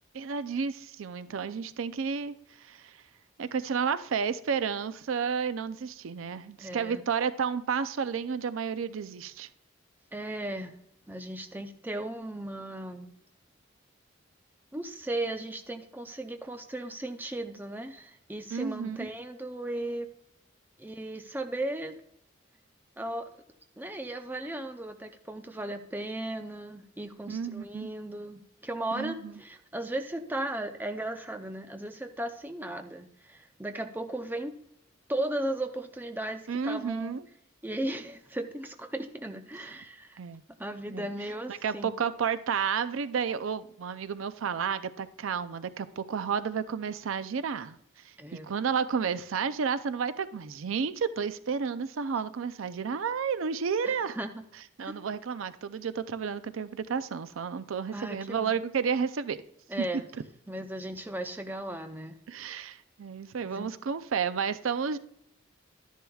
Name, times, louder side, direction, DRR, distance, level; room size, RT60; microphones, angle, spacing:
voice 1, 0.1-3.0 3.4-9.5 18.5-19.1 27.3-27.9 28.9-29.3 36.5-37.2 39.6-39.7 40.2-40.4 40.9-41.1 41.5-47.8 48.4-54.2 54.8-59.4 59.8-59.9 62.3-65.0, right 6 dB, 90° right, 0.5 m, -31 dB
voice 2, 6.6-7.0 10.1-10.7 11.1-13.1 14.7-20.1 20.8-22.0 23.0-23.3 23.8-34.6 35.1-37.2 37.6-40.2 40.6-41.9 48.2-48.5 53.8-54.3 54.8-55.0 57.9-58.5 59.7-60.0 60.5-62.2 63.4-63.7, right 1 dB, 10° right, 0.5 m, -36 dB
12.0 x 10.5 x 2.3 m
head